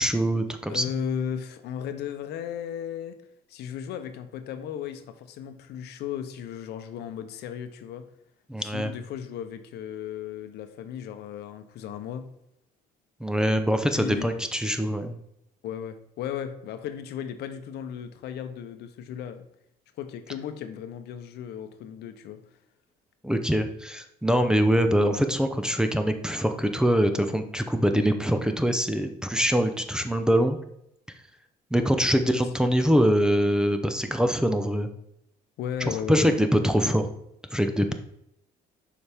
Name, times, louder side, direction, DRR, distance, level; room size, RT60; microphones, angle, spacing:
voice 1, 0.0-0.8 8.5-8.9 13.2-15.2 23.2-30.6 31.7-34.9 35.8-37.1 37.5-37.9, equal, 5° right, 7 dB, 0.6 m, -23 dB
voice 2, 0.7-3.1 3.5-8.1 8.6-12.3 13.5-14.4 15.6-19.5 20.0-22.4 32.3-32.5 35.6-36.4 37.9-38.0, left 8 dB, 75° left, 9 dB, 0.8 m, -35 dB
7.0 x 5.0 x 3.5 m, 0.79 s
cardioid pair, 110°, 17 cm